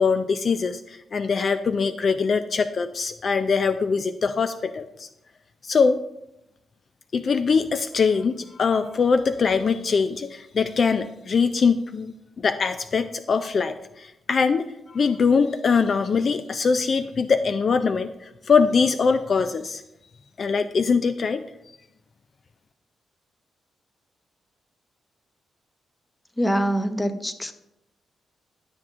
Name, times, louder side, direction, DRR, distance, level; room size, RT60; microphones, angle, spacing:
voice 1, 0.0-5.1 5.6-6.0 7.1-18.1 18.5-19.8 20.4-21.4, left 5 dB, 55° left, 11 dB, 0.3 m, -22 dB
voice 2, 26.4-27.5, equal, 15° left, 10 dB, 0.7 m, -24 dB
11.0 x 6.1 x 2.5 m, 0.88 s
supercardioid pair, 50°, 0 cm